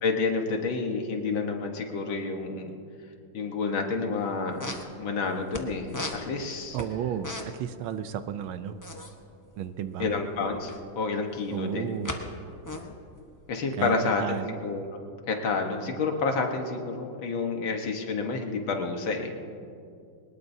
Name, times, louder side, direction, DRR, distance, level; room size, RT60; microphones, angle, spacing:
voice 1, 0.0-2.8 3.3-4.6 5.0-6.8 10.0-12.0 13.5-14.4 14.6-14.9 15.3-19.3, left 4 dB, 65° left, 3 dB, 2.0 m, -29 dB
sound 1, 4.2-4.3 4.4-5.6 5.9-7.7 8.0-8.1 8.4-10.9 11.4-12.2 12.5-14.4, left 2 dB, 30° left, 0.3 m, -37 dB
voice 2, 6.7-8.8 9.6-10.2 11.5-12.1 13.7-14.6, right 9 dB, 75° right, 11 dB, 1.4 m, -33 dB
22.5 x 20.0 x 2.7 m, 2.5 s
omnidirectional pair, 2.4 m